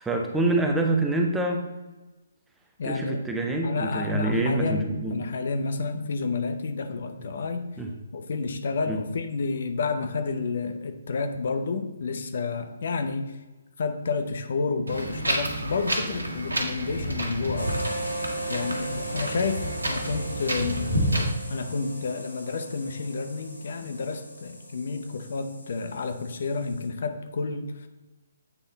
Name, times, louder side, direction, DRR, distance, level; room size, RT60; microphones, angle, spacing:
voice 1, 0.0-1.6 2.9-5.3 7.8-7.9 8.9-9.0 23.8-23.9, right 2 dB, 5° right, 2 dB, 0.7 m, -26 dB
voice 2, 2.8-3.2 3.6-7.7 8.1-13.4 13.8-18.0 18.5-20.8 21.5-27.9, left 4 dB, 55° left, 7 dB, 0.6 m, -30 dB
Wind, 14.9-21.3, right 1 dB, 80° right, 1.3 m, -29 dB
sound 1, 17.6-26.9, right 2 dB, 80° left, 1.4 m, -38 dB
8.1 x 3.6 x 4.0 m, 1.2 s
figure-of-eight pair, 135°, 0 cm